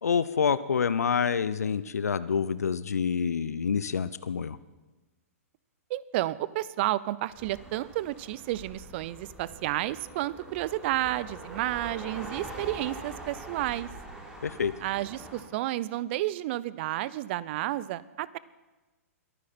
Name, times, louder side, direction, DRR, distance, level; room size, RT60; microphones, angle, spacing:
voice 1, 0.0-4.6 14.4-14.7, left 6 dB, 85° left, 15 dB, 0.6 m, -27 dB
voice 2, 5.9-13.9 14.8-18.4, right 15 dB, 45° right, 19 dB, 0.6 m, -31 dB
sound 1, 7.3-15.4, right 2 dB, 10° right, 3.4 m, -44 dB
21.5 x 9.7 x 4.3 m, 1.2 s
hypercardioid pair, 120°, 8 cm